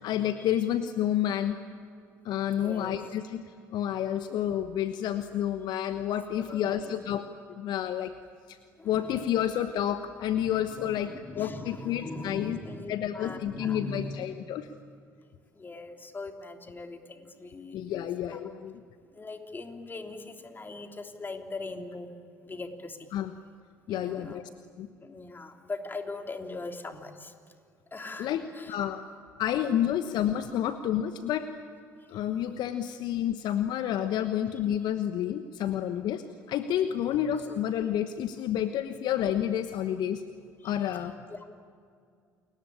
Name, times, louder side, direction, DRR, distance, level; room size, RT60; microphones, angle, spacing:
voice 1, 0.0-1.6 2.2-3.4 3.7-7.2 7.5-8.1 8.5-8.6 8.8-12.6 12.9-14.7 17.7-18.7 23.1-23.3 23.9-24.5 24.8-24.9 28.2-29.0 29.4-31.5 32.1-40.2 40.6-41.1, left 10 dB, 55° left, 10 dB, 1.2 m, -29 dB
voice 2, 2.6-3.0 6.4-7.2 8.8-9.2 10.3-14.2 15.5-18.4 19.1-22.1 22.4-23.1 23.9-24.4 25.0-27.3 27.9-28.7 40.6-41.0 41.3-41.4, left 3 dB, 25° left, 5 dB, 3.2 m, -41 dB
29.0 x 22.0 x 8.7 m, 2.3 s
hypercardioid pair, 55°, 9 cm